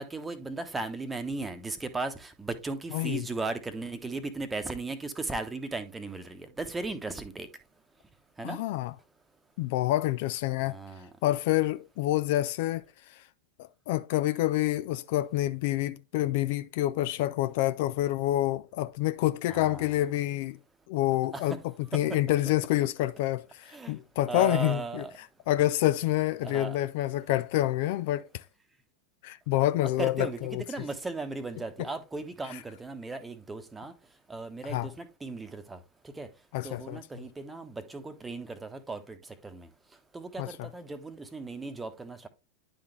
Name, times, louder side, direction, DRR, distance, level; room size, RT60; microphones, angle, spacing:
voice 1, 0.0-7.5 8.4-8.6 10.6-11.1 19.5-19.9 21.3-21.5 21.9-22.2 23.7-24.0 24.3-25.1 26.4-26.8 30.0-33.9 34.3-35.8 36.2-36.3 36.6-39.2 39.4-39.7 40.1-42.3, right 3 dB, 10° right, 1.0 m, -36 dB
voice 2, 2.9-3.3 8.4-8.9 9.6-10.8 11.2-13.2 13.6-20.6 20.9-28.4 29.2-30.9 32.5-32.6 34.6-34.9 36.5-37.0 40.4-40.7, left 15 dB, 50° left, 0.3 m, -28 dB
10.5 x 3.8 x 3.1 m
figure-of-eight pair, 90°, 0 cm